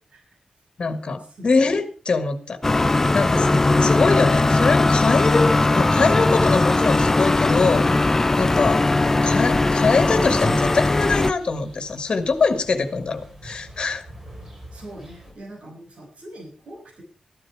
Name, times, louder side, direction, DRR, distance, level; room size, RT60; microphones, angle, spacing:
voice 1, 0.1-0.4 1.2-1.5 14.7-17.0, right 1 dB, 80° right, 1 dB, 6.2 m, -42 dB
voice 2, 0.8-2.6 2.9-14.0, left 4 dB, 50° left, 9 dB, 1.7 m, -23 dB
sound 1, 2.6-11.3, left 2 dB, 20° left, 0.5 m, -19 dB
sound 2, 10.3-15.3, equal, 20° right, 4.9 m, -45 dB
14.0 x 12.0 x 4.8 m, 0.40 s
wide cardioid pair, 170°, 2 cm